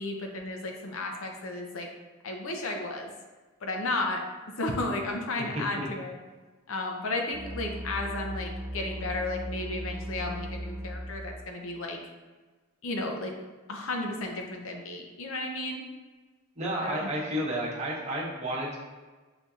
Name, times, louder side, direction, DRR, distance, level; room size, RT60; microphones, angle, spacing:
voice 1, 0.0-1.9 2.2-3.1 3.6-4.2 4.6-6.2 6.7-12.0 12.8-13.3 13.7-15.9 16.8-17.1, left 2 dB, 65° left, 2 dB, 0.5 m, -33 dB
voice 2, 5.4-5.9 16.6-18.8, right 1 dB, 30° right, -6 dB, 0.9 m, -31 dB
sound 1, 7.3-11.4, equal, 5° right, 0.4 m, -37 dB
5.9 x 2.6 x 2.4 m, 1.3 s
head